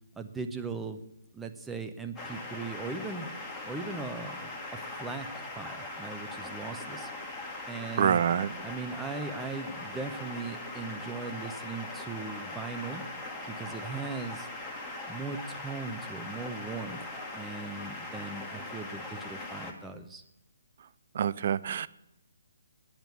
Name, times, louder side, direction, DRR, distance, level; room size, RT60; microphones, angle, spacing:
voice 1, 0.2-1.0 1.3-3.3 3.6-7.1 7.7-8.2 8.6-13.0 13.5-14.5 15.1-17.0 17.3-20.2, right 4 dB, 5° right, 6 dB, 0.8 m, -39 dB
sound 1, 2.2-19.7, left 2 dB, 10° left, 1.8 m, -40 dB
voice 2, 8.0-8.5 21.1-21.9, right 8 dB, 45° right, 18 dB, 0.4 m, -26 dB
10.5 x 9.2 x 8.1 m, 0.89 s
figure-of-eight pair, 135°, 0 cm